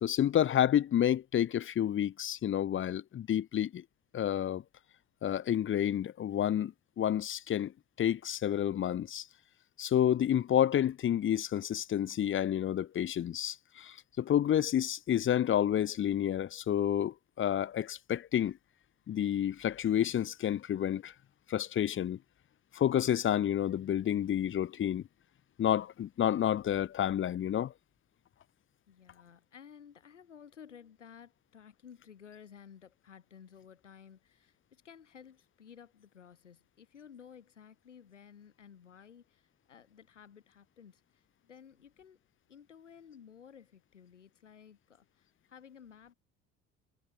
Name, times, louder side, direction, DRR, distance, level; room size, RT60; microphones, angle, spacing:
voice 1, 0.0-3.8 4.1-4.6 5.2-7.7 8.0-9.3 9.8-18.6 19.1-21.1 21.5-22.2 22.7-25.0 25.6-27.7, left 10 dB, 35° left, 1.1 m, -29 dB
voice 2, 28.9-42.2 42.5-46.1, left 8 dB, 80° left, 3.8 m, -55 dB
figure-of-eight pair, 60°, 36 cm